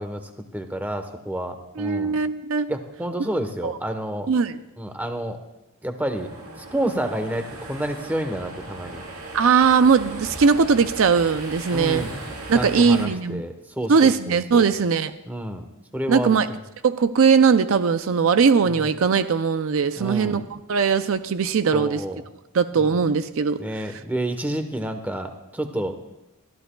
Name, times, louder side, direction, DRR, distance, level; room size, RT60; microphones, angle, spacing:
voice 1, 0.0-2.2 2.7-4.3 4.8-5.4 5.8-6.3 6.6-9.0 11.7-12.2 12.5-14.7 15.3-15.6 15.9-16.4 18.8-18.9 20.0-20.4 21.7-22.2 22.8-23.0 23.6-26.0, right 1 dB, 10° right, 7 dB, 1.0 m, -29 dB
voice 2, 1.8-2.7 3.6-3.8 4.3-4.6 9.3-12.1 12.5-13.4 13.9-15.1 16.1-16.5 16.8-22.0 22.5-23.6 23.9-24.0, right 5 dB, 65° right, 11 dB, 0.5 m, -20 dB
sound 1, 6.1-13.1, right 2 dB, 90° right, 3.5 m, -38 dB
22.5 x 13.5 x 2.3 m, 0.92 s
head